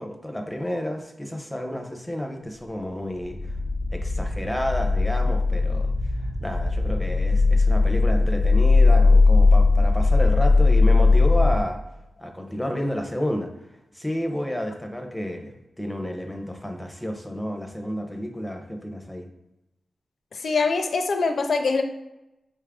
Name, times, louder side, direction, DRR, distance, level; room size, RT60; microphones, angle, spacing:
voice 1, 0.0-3.4 3.9-5.9 6.4-11.8 12.2-13.5 13.9-15.5 15.8-19.3, equal, 5° left, 4 dB, 0.6 m, -30 dB
sound 1, 3.2-11.6, left 3 dB, 60° right, 1.1 m, -19 dB
voice 2, 20.3-21.8, left 4 dB, 70° left, 6 dB, 0.4 m, -23 dB
5.3 x 2.4 x 3.5 m, 0.92 s
wide cardioid pair, 110°, 0 cm